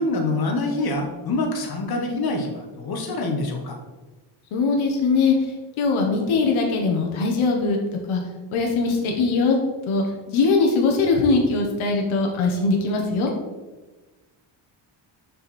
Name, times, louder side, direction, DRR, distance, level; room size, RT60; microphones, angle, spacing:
voice 1, 0.0-3.8, left 2 dB, 50° left, 3 dB, 1.5 m, -25 dB
voice 2, 4.5-5.3 5.8-7.8 8.1-8.2 8.5-9.6 9.9-13.3, left 4 dB, 80° left, 1 dB, 1.4 m, -21 dB
6.7 x 5.5 x 4.3 m, 1.2 s
cardioid pair, 135°, 47 cm